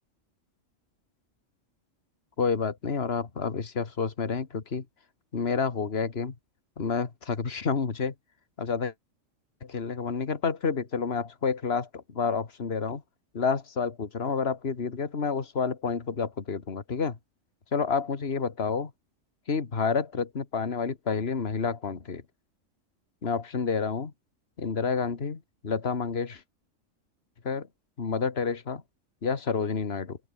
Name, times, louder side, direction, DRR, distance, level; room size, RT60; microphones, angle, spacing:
voice 1, 2.4-4.9 5.3-6.4 6.8-8.1 8.6-8.9 9.6-13.0 13.3-17.2 17.7-18.9 19.5-22.2 23.2-24.1 24.6-26.4 27.4-27.7 28.0-28.8 29.2-30.2, left 5 dB, 50° left, 2.1 m, -29 dB
open air
omnidirectional pair, 1.4 m